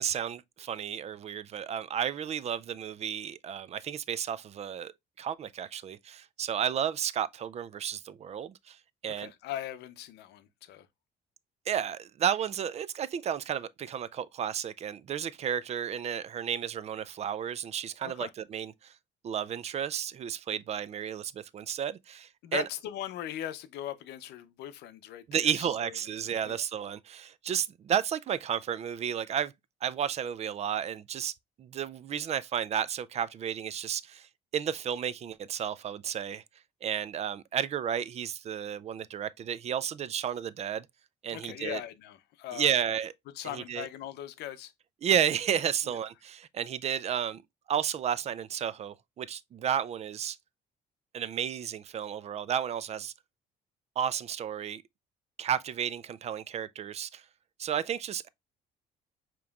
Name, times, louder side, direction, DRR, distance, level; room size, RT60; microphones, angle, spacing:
voice 1, 0.0-4.9 5.2-8.8 9.0-9.3 11.7-18.9 19.2-22.6 25.3-29.5 29.8-31.3 31.6-36.4 36.8-40.9 41.2-41.8 42.5-43.1 43.4-43.9 45.0-47.4 47.7-50.4 51.1-53.1 54.0-54.8 55.4-57.2 57.6-58.3, right 9 dB, 40° right, 0.4 m, -32 dB
voice 2, 9.1-10.9 18.0-18.3 22.4-25.9 26.4-26.6 41.3-42.8 43.3-44.7 45.9-46.0, left 12 dB, 80° left, 0.6 m, -39 dB
6.9 x 3.0 x 2.3 m
cardioid pair, 110°, 17 cm